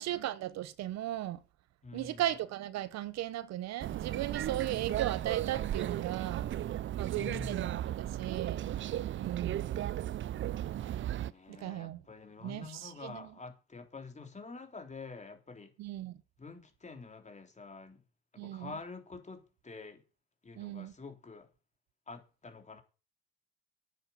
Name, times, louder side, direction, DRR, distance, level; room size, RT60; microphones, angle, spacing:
voice 1, 0.0-1.4 1.9-6.5 7.0-8.7 9.1-9.7 10.7-10.8 11.5-12.0 12.4-13.2 15.8-16.2 18.4-18.7 20.6-20.9, right 13 dB, 60° right, 0.9 m, -37 dB
voice 2, 1.8-2.2 7.1-7.7 11.3-15.7 16.4-18.0 18.3-20.0 20.4-21.5 22.1-22.8, left 4 dB, 25° left, 3.5 m, -47 dB
sound 1, 3.8-11.3, right 12 dB, 40° right, 0.6 m, -35 dB
9.9 x 9.4 x 7.0 m
supercardioid pair, 80°, 30 cm